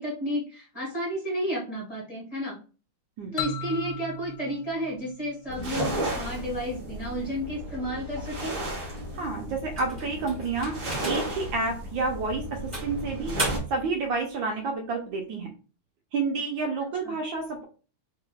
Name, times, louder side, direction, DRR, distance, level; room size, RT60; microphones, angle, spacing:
voice 1, 0.0-2.6 3.3-8.6 17.0-17.1, equal, 20° left, -6 dB, 1.4 m, -32 dB
sound 1, 3.4-6.1, left 3 dB, 70° left, 1.0 m, -37 dB
sound 2, 5.5-13.6, right 1 dB, 50° right, 1.6 m, -34 dB
voice 2, 9.1-10.7 11.0-12.4 12.8-15.5 16.1-17.6, right 3 dB, 70° right, 1 dB, 1.3 m, -29 dB
sound 3, 9.7-11.5 12.0-12.1 12.7-13.9, right 2 dB, 15° right, 1.6 m, -34 dB
3.7 x 3.3 x 2.3 m, 0.36 s
omnidirectional pair, 2.4 m